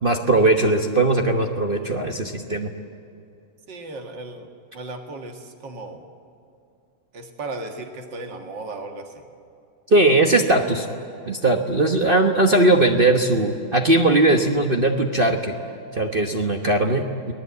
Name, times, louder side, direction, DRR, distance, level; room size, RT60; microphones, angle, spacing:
voice 1, 0.0-2.7 9.9-10.9 11.3-15.5 15.9-17.3, right 2 dB, 35° right, 3 dB, 1.0 m, -19 dB
voice 2, 3.7-6.0 7.1-9.2, right 2 dB, 60° right, 4 dB, 2.5 m, -36 dB
30.0 x 19.5 x 8.3 m, 2.6 s
omnidirectional pair, 2.3 m